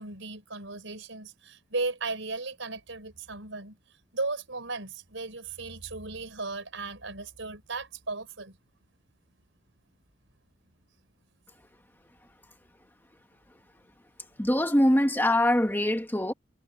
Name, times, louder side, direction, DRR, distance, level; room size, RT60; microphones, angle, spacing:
voice 1, 0.0-3.8 4.1-8.6, right 3 dB, 90° right, 5.0 m, -36 dB
voice 2, 14.4-16.3, left 1 dB, 10° left, 1.8 m, -23 dB
head